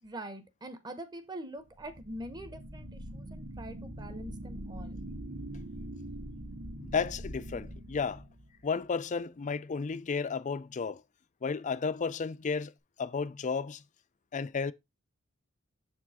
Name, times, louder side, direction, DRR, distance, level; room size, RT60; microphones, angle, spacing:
voice 1, 0.0-5.0, right 1 dB, 20° right, 1.0 m, -44 dB
sound 1, 1.7-8.7, right 1 dB, 70° right, 1.5 m, -43 dB
voice 2, 6.8-8.2 8.6-11.0 11.4-12.7 13.0-13.8 14.3-14.7, left 5 dB, 35° left, 0.4 m, -33 dB
7.2 x 4.6 x 4.2 m
head